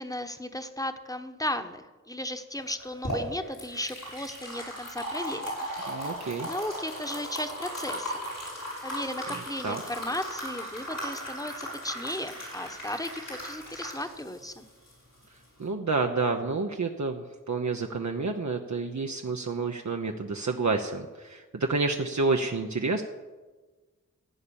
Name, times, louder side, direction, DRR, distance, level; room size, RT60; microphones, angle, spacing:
voice 1, 0.0-5.7 6.5-8.1 8.8-14.6, left 1 dB, 10° left, 8 dB, 1.2 m, -35 dB
sound 1, 2.7-15.6, equal, 85° left, 6.0 m, -37 dB
voice 2, 5.9-6.5 9.6-9.8 15.6-23.0, right 3 dB, 60° right, 3 dB, 1.0 m, -29 dB
15.0 x 8.8 x 7.1 m, 1.3 s
wide cardioid pair, 40°, 32 cm